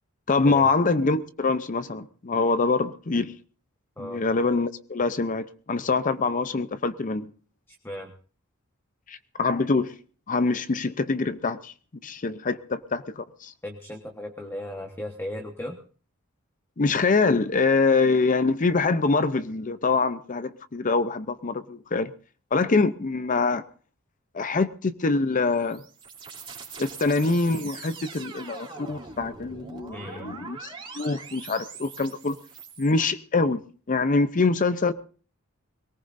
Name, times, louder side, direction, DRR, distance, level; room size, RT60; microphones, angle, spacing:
voice 1, 0.3-3.3 4.0-7.3 9.1-9.9 10.3-11.7 12.0-13.5 16.8-22.1 22.5-23.6 24.3-25.8 26.8-32.4 32.8-33.6 33.9-34.9, left 3 dB, 40° left, 0.6 m, -24 dB
voice 2, 7.7-8.1 13.6-15.8 29.9-30.3, left 1 dB, 10° left, 1.3 m, -36 dB
sound 1, 25.3-32.9, right 4 dB, 25° right, 3.0 m, -42 dB
22.0 x 18.5 x 2.6 m
head